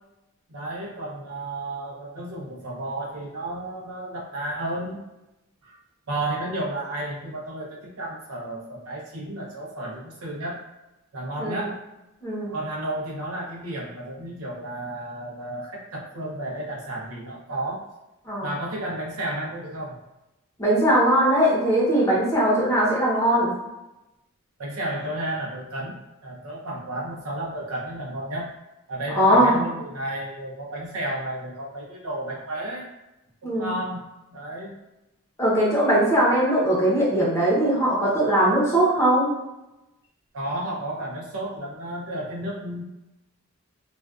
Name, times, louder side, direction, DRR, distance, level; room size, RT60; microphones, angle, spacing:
voice 1, 0.5-5.0 5.6-5.8 6.1-10.6 11.1-11.8 12.5-17.9 18.4-20.0 24.6-28.5 28.9-32.9 33.4-34.8 40.3-42.8, right 1 dB, 90° right, -3 dB, 0.7 m, -32 dB
voice 2, 12.2-12.5 18.3-18.5 20.6-23.5 29.1-29.6 33.4-33.7 35.4-39.3, right 1 dB, 15° left, -7 dB, 0.7 m, -20 dB
2.4 x 2.3 x 2.3 m, 0.98 s
head